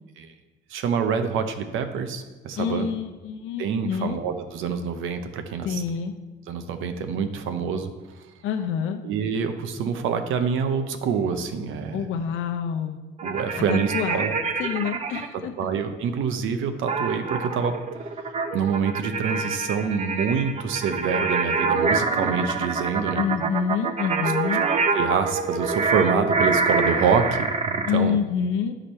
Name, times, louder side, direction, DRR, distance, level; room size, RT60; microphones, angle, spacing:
voice 1, 0.7-2.9 3.6-5.8 6.5-7.9 9.0-12.1 13.2-14.3 15.6-18.1 18.5-23.2 24.9-28.2, right 6 dB, 85° right, 8 dB, 0.8 m, -26 dB
voice 2, 2.6-4.2 5.6-6.1 8.4-9.0 11.9-13.0 13.7-14.3 14.6-15.5 23.1-24.6 27.9-28.8, left 7 dB, 80° left, 4 dB, 0.6 m, -27 dB
sound 1, 13.2-15.3 16.9-28.0, right 4 dB, 30° right, 0.7 m, -26 dB
10.0 x 5.0 x 4.3 m, 1.2 s
cardioid pair, 90°, 20 cm